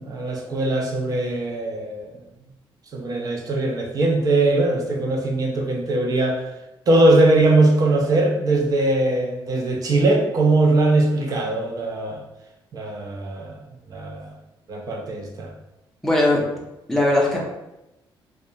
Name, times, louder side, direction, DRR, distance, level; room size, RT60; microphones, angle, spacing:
voice 1, 0.0-2.1 2.9-6.4 6.9-12.2 12.7-13.6 13.9-14.3 14.7-15.5, right 2 dB, 40° right, 1 dB, 0.5 m, -20 dB
voice 2, 16.0-16.5 16.9-17.4, left 1 dB, 5° left, -3 dB, 0.5 m, -19 dB
2.2 x 2.1 x 2.7 m, 0.93 s
cardioid pair, 135°, 9 cm